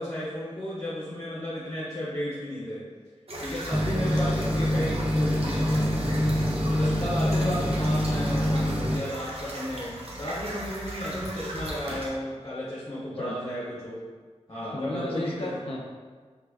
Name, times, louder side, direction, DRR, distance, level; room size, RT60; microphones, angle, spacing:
voice 1, 0.0-2.8 3.4-6.2 6.7-14.0 14.5-15.6, equal, 35° left, -8 dB, 0.9 m, -33 dB
sound 1, 3.3-12.1, right 1 dB, 60° right, 0.7 m, -38 dB
sound 2, 3.7-9.0, equal, 10° right, 0.4 m, -25 dB
voice 2, 14.7-15.8, left 1 dB, 55° left, -2 dB, 0.5 m, -34 dB
3.5 x 3.1 x 2.3 m, 1.5 s
wide cardioid pair, 60°, 12 cm